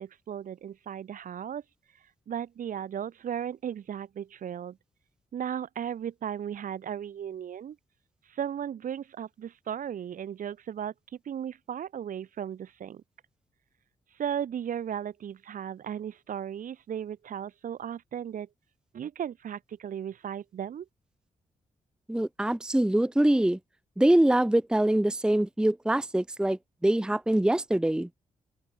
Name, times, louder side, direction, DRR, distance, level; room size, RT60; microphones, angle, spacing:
voice 1, 0.0-1.6 2.3-4.8 5.3-7.8 8.3-10.9 11.2-13.0 14.2-18.5 18.9-20.9, right 9 dB, 70° right, 1.6 m, -36 dB
voice 2, 22.1-23.6 24.0-28.1, right 1 dB, 5° right, 0.6 m, -24 dB
open air
supercardioid pair, 40°, 14 cm